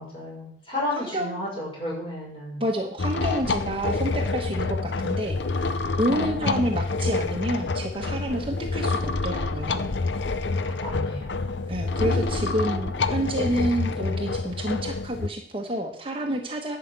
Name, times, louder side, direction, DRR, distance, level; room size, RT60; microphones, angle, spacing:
voice 1, 0.0-2.6 3.2-3.3 6.1-6.8 10.5-11.7, left 1 dB, 30° left, -5 dB, 6.1 m, -34 dB
voice 2, 0.9-1.4 2.6-5.4 6.0-9.9 11.7-16.8, right 1 dB, 30° right, 2 dB, 1.2 m, -29 dB
sound 1, 3.0-15.3, left 3 dB, 80° left, 0.7 m, -27 dB
11.0 x 5.8 x 8.4 m, 0.66 s
head